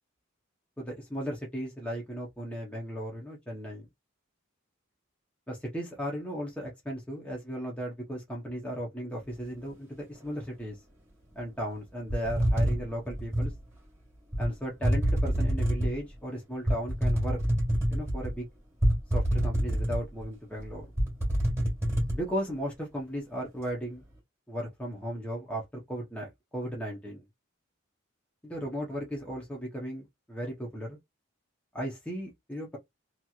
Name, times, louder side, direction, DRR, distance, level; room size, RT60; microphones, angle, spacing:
voice 1, 0.8-3.9 5.5-10.8 11.4-13.5 14.4-17.4 17.9-18.5 19.1-20.8 22.1-24.0 24.5-27.2 28.4-31.0 31.7-32.8, equal, 5° left, 0.8 m, -36 dB
sound 1, 12.1-13.5 14.3-14.5 14.8-16.0 16.7-18.3 18.8-20.2 20.6-20.7 21.0-22.2, equal, 15° right, 1.5 m, -26 dB
3.0 x 2.8 x 2.4 m
head